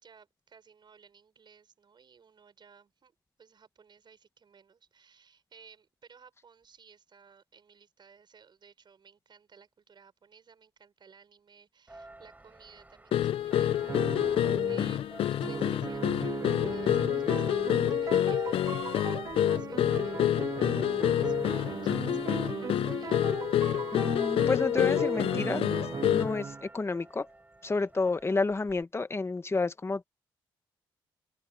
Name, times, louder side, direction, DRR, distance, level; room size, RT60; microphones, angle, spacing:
voice 1, 0.0-20.8 21.1-23.2, right 6 dB, 50° right, 6.2 m, -58 dB
Church bell, 11.9-28.8, right 2 dB, 15° right, 4.1 m, -53 dB
sound 1, 13.1-26.4, left 11 dB, 70° left, 0.6 m, -28 dB
sound 2, 13.8-15.0 15.4-26.7, right 6 dB, 35° right, 0.4 m, -37 dB
voice 2, 23.9-25.6 26.1-27.3 27.6-30.0, left 3 dB, 25° left, 1.3 m, -30 dB
open air
supercardioid pair, 60°, 10 cm